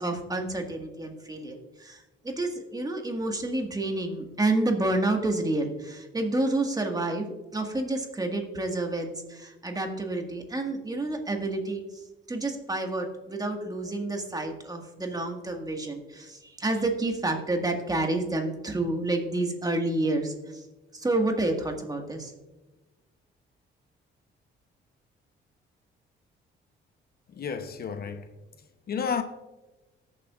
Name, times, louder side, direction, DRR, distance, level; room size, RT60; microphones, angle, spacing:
voice 1, 0.0-7.3 7.5-20.6 20.9-22.3, right 2 dB, 20° right, 1.7 m, -29 dB
voice 2, 27.3-28.3 28.9-29.2, left 6 dB, 50° left, 0.8 m, -31 dB
18.5 x 7.0 x 2.4 m
cardioid pair, 90°, 20 cm